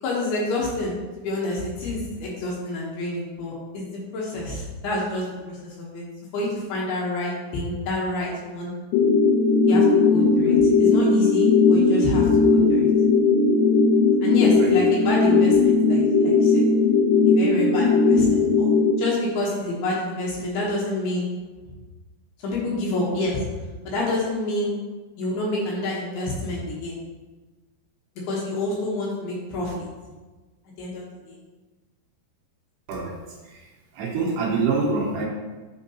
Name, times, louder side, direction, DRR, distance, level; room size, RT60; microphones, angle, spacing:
voice 1, 0.0-6.0 6.3-8.7 9.7-12.9 14.2-16.6 17.3-18.7 19.0-21.3 22.4-23.4 23.8-24.7 25.2-27.0 28.3-29.7 30.8-31.4, left 2 dB, 75° left, -4 dB, 2.8 m, -28 dB
sound 1, 8.9-18.9, left 4 dB, 90° left, 2.8 m, -18 dB
voice 2, 14.4-14.7 32.9-33.2 33.4-35.2, right 4 dB, 80° right, -3 dB, 3.0 m, -26 dB
9.1 x 4.4 x 2.8 m, 1.3 s
omnidirectional pair, 4.9 m